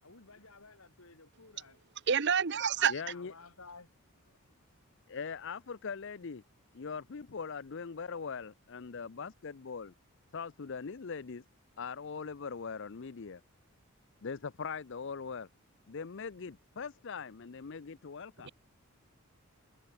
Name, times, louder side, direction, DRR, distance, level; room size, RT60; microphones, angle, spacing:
voice 1, 0.0-1.8 3.1-3.9, left 3 dB, 70° left, 4.2 m, -54 dB
voice 2, 2.1-2.9 18.4-18.5, right 7 dB, 55° right, 0.8 m, -28 dB
voice 3, 2.9-3.3 5.1-6.4 6.7-9.9 10.3-11.4 11.8-13.4 14.2-15.5 15.9-18.5, left 5 dB, 55° left, 0.6 m, -41 dB
head